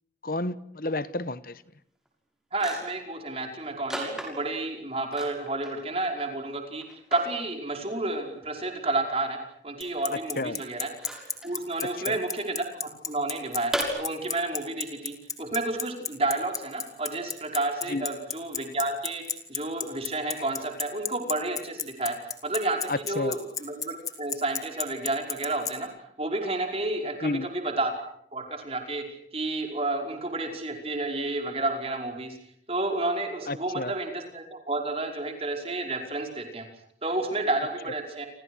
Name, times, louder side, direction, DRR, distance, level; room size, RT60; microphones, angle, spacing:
voice 1, 0.2-1.6 10.4-10.6 12.1-12.2 17.9-18.1 22.9-23.4 27.2-27.5 33.5-33.9, left 2 dB, 55° left, 15 dB, 1.2 m, -30 dB
sound 1, 2.0-2.1 2.5-3.1 3.9-4.6 5.1-5.8 6.2-6.3 6.8-7.3 8.7-8.8 10.9-11.5 13.7-13.8, right 1 dB, 5° right, 6.4 m, -35 dB
voice 2, 2.5-6.8 7.1-9.4 9.6-10.9 11.4-19.2 19.5-22.2 22.4-22.8 23.1-25.9 26.2-27.9 28.3-29.0 29.3-32.4 32.7-36.7 37.0-38.3, right 2 dB, 35° right, 3 dB, 5.3 m, -30 dB
Bicycle, 9.8-25.7, left 6 dB, 20° left, 2.7 m, -31 dB
29.5 x 27.5 x 6.4 m, 0.69 s
head